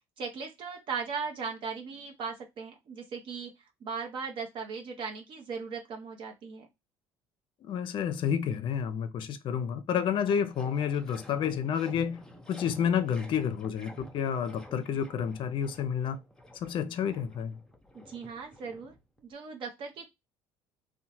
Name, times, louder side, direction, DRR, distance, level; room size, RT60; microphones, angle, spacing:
voice 1, 0.2-3.5 3.8-6.7 17.9-18.9 19.2-20.1, right 5 dB, 55° right, 0.8 m, -38 dB
voice 2, 7.6-12.2 12.5-16.2 16.6-17.6, left 8 dB, 55° left, 0.5 m, -30 dB
sound 1, 10.2-19.3, left 1 dB, 5° left, 0.7 m, -51 dB
2.7 x 2.1 x 2.9 m
supercardioid pair, 80°, 10 cm